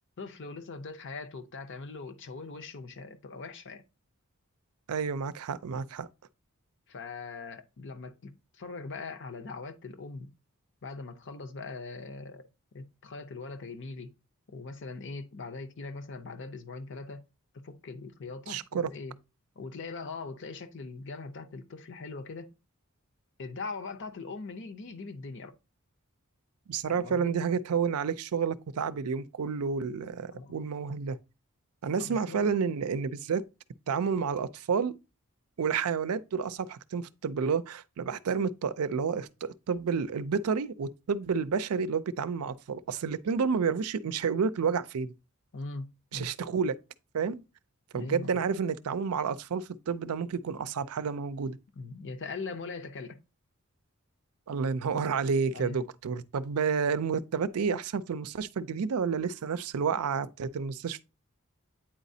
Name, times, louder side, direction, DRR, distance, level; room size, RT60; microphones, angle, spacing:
voice 1, 0.2-3.8 6.9-10.3 10.8-12.5 12.7-14.1 14.5-17.2 17.5-19.2 19.6-22.5 23.4-25.5 26.9-27.3 30.3-30.6 32.0-32.5 45.5-46.3 47.9-48.3 51.7-53.2 55.5-55.8, left 3 dB, 55° left, 0.7 m, -41 dB
voice 2, 4.9-6.1 18.5-18.9 26.7-31.2 31.8-33.4 33.9-34.9 35.6-45.1 46.1-46.8 47.1-47.4 47.9-51.6 54.5-61.0, right 6 dB, 80° right, 0.4 m, -30 dB
8.8 x 4.1 x 2.7 m
head